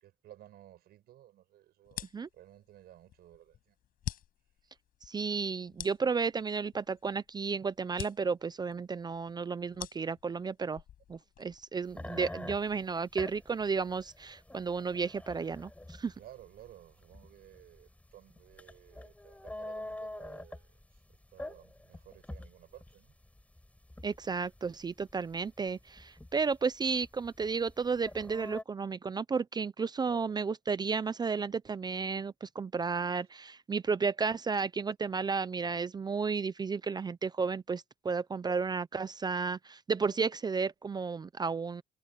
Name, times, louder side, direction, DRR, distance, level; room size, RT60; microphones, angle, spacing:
voice 1, 0.0-2.0 2.3-3.7 12.6-12.9 16.2-21.0 21.3-23.1 30.1-30.3, right 13 dB, 70° right, 6.0 m, -55 dB
sound 1, 1.8-11.7, left 11 dB, 60° left, 5.7 m, -47 dB
voice 2, 5.1-10.8 11.1-16.1 24.0-41.8, right 5 dB, 25° right, 0.6 m, -33 dB
sound 2, 11.9-28.6, left 1 dB, 10° left, 6.2 m, -46 dB
cardioid pair, 110°, 17 cm